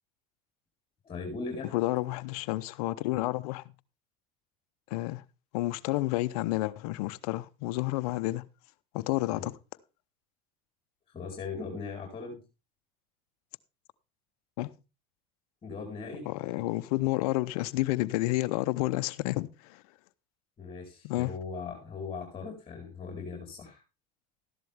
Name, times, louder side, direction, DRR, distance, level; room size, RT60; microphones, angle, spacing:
voice 1, 1.0-1.7 9.3-9.5 11.1-12.4 15.6-16.3 20.6-23.8, left 4 dB, 25° left, 4.3 m, -39 dB
voice 2, 1.7-3.6 4.9-5.2 5.5-8.5 8.9-9.5 14.6-14.7 16.3-19.8 21.0-21.3, left 19 dB, 75° left, 0.8 m, -30 dB
13.5 x 11.0 x 3.5 m
supercardioid pair, 100°, 19 cm